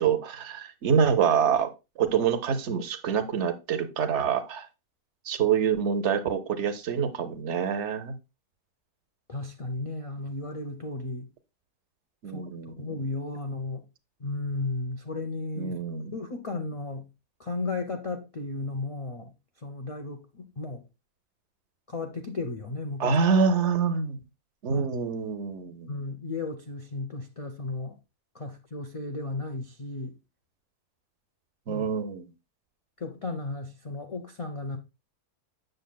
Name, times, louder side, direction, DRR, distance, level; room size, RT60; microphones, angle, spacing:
voice 1, 0.0-1.7 2.0-4.7 5.3-8.1 12.2-12.9 15.6-16.1 23.0-24.2 24.6-25.9 31.7-32.3, right 6 dB, 55° right, 0.9 m, -26 dB
voice 2, 9.3-11.3 12.3-12.5 12.8-13.9 14.2-15.8 16.1-17.1 17.4-20.8 21.9-23.2 24.7-24.9 25.9-28.0 28.3-30.1 31.7-31.9 33.0-34.8, left 3 dB, 50° left, 0.4 m, -34 dB
7.9 x 6.7 x 2.2 m
omnidirectional pair, 1.7 m